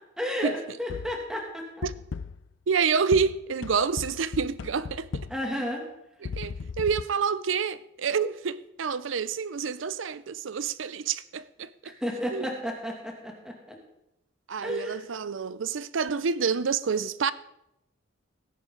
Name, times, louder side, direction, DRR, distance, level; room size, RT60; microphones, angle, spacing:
voice 1, 0.2-1.7 5.3-5.8 12.0-13.8 14.6-15.0, equal, 5° right, 2.4 m, -32 dB
sound 1, 0.9-1.3 1.8-2.5 3.1-5.5 6.2-7.0, left 5 dB, 75° left, 0.4 m, -37 dB
voice 2, 2.7-5.2 6.2-11.9 12.3-12.5 14.5-17.3, right 6 dB, 80° right, 0.5 m, -28 dB
17.5 x 10.0 x 3.9 m
head